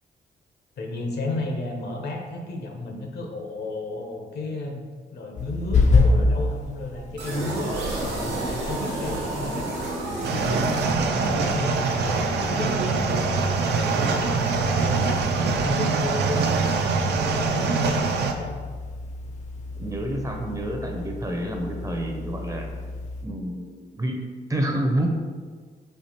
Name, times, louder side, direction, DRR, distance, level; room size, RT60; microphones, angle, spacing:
voice 1, 0.8-4.8 5.1-9.7 10.2-16.6 17.2-18.6, left 2 dB, 70° left, 1 dB, 0.7 m, -33 dB
sound 1, 5.3-23.3, left 3 dB, 45° left, 0.5 m, -30 dB
sound 2, 7.2-11.4, right 1 dB, 90° right, 0.8 m, -30 dB
sound 3, 10.2-18.3, right 4 dB, 70° right, 0.4 m, -23 dB
voice 2, 19.8-22.7 23.2-25.1, right 1 dB, 20° right, 2 dB, 0.5 m, -29 dB
4.4 x 2.5 x 2.9 m, 1.5 s
cardioid pair, 75°, 18 cm